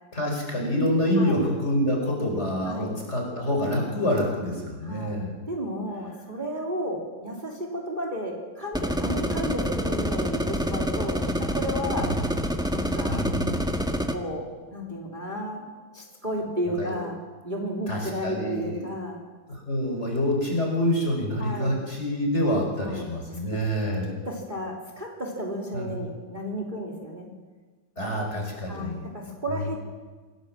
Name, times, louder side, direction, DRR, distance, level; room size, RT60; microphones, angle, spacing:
voice 1, 0.1-5.4 12.0-12.2 13.1-13.6 16.8-17.0 17.9-18.9 19.5-24.1 25.7-25.9 28.0-29.1 29.5-29.6, equal, 30° left, 0 dB, 5.3 m, -27 dB
voice 2, 1.1-1.4 2.6-3.0 4.8-5.2 5.5-12.1 12.7-13.2 14.1-15.7 15.9-17.2 17.4-19.2 21.4-21.7 22.8-23.1 23.3-23.4 24.2-27.3 28.7-29.8, equal, 20° right, -1 dB, 3.1 m, -33 dB
sound 1, 8.7-14.2, equal, ahead, 1.3 m, -27 dB
27.0 x 17.0 x 7.5 m, 1.4 s
omnidirectional pair, 2.2 m